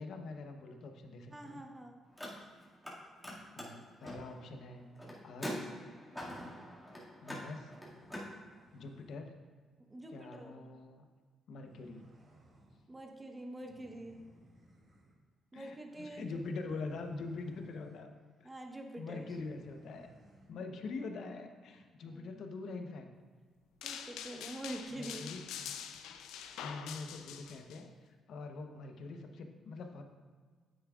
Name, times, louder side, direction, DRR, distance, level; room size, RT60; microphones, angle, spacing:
voice 1, 0.0-1.6 3.5-4.8 5.2-5.5 7.2-7.7 8.0-8.2 8.7-9.3 10.1-11.0 11.5-12.1 15.5-18.1 18.4-18.5 18.9-20.1 20.5-23.1 24.9-25.7 26.4-27.9 28.3-30.0, left 3 dB, 70° left, 5 dB, 0.8 m, -44 dB
voice 2, 1.3-2.0 6.4-6.7 8.1-8.3 9.9-10.6 12.9-14.2 15.5-16.4 18.4-19.3 22.1-22.3 23.8-25.3, right 1 dB, 15° right, 3 dB, 1.0 m, -46 dB
Car, 2.0-2.9 3.2-8.3, equal, 10° left, 2.0 m, -44 dB
sound 1, 7.7-9.2 11.5-12.9 13.6-15.2 16.1-18.0 18.4-18.7 19.1-20.5, right 1 dB, 45° right, 2.1 m, -62 dB
sound 2, 23.8-27.8, left 8 dB, 90° left, 0.5 m, -45 dB
9.4 x 7.8 x 2.4 m, 1.5 s
cardioid pair, 90°, 0 cm